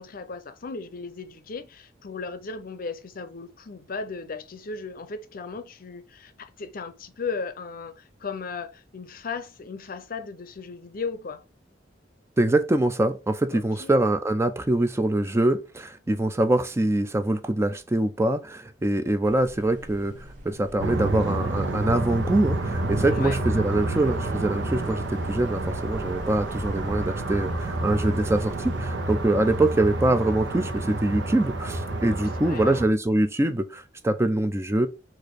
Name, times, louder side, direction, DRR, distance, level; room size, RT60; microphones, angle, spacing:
voice 1, 0.0-11.4 13.5-14.0 23.1-23.4 32.2-32.7, left 4 dB, 50° left, 0.6 m, -36 dB
voice 2, 12.4-20.2 20.4-34.9, right 1 dB, 15° right, 0.4 m, -24 dB
sound 1, 19.2-28.9, right 1 dB, 50° right, 1.4 m, -44 dB
sound 2, 20.8-32.9, right 2 dB, 85° right, 0.9 m, -29 dB
4.3 x 2.6 x 4.6 m
head